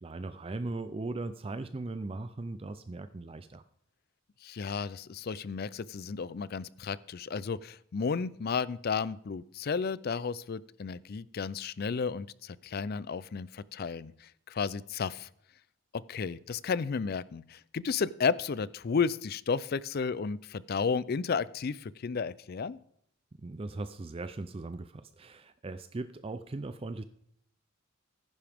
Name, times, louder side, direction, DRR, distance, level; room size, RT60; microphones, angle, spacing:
voice 1, 0.0-3.6 23.4-27.0, right 2 dB, 25° right, 11 dB, 0.4 m, -38 dB
voice 2, 4.4-15.3 15.9-22.8, left 5 dB, 45° left, 19 dB, 0.4 m, -33 dB
15.0 x 10.5 x 3.5 m, 0.70 s
head